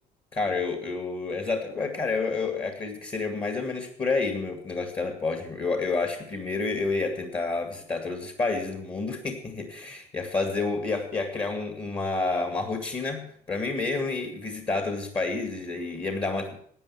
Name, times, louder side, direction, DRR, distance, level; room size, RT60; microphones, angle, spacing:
voice 1, 0.3-16.6, left 3 dB, 30° left, 5 dB, 2.2 m, -29 dB
12.5 x 8.9 x 7.1 m, 0.63 s
cardioid pair, 110°, 17 cm